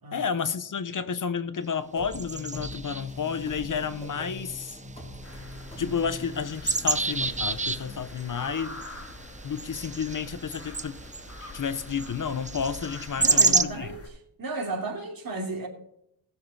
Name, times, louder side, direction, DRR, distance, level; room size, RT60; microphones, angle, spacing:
voice 1, 0.1-4.8 5.8-8.8 9.4-11.0 11.5-13.9, left 6 dB, 55° left, 0.8 m, -31 dB
sound 1, 2.0-8.0, left 2 dB, 15° left, 4.3 m, -42 dB
sound 2, 2.1-13.6, right 3 dB, 20° right, 0.6 m, -31 dB
sound 3, 5.2-14.1, left 2 dB, 35° left, 2.2 m, -45 dB
voice 2, 13.2-14.0 14.4-15.7, right 2 dB, 60° right, 2.9 m, -33 dB
19.0 x 7.1 x 4.1 m
wide cardioid pair, 120°, 39 cm